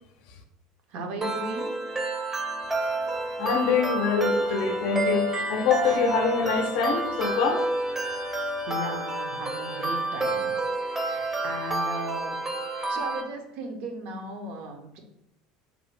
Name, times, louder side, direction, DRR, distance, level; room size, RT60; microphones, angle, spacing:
voice 1, 0.9-1.7 8.7-10.5 10.8-12.4 12.6-15.0, right 2 dB, 60° right, 0.6 m, -36 dB
sound 1, 1.2-13.2, right 2 dB, 10° right, 0.6 m, -29 dB
voice 2, 3.4-7.7, left 5 dB, 70° left, 0.5 m, -25 dB
2.6 x 2.1 x 3.1 m
hypercardioid pair, 90°, 3 cm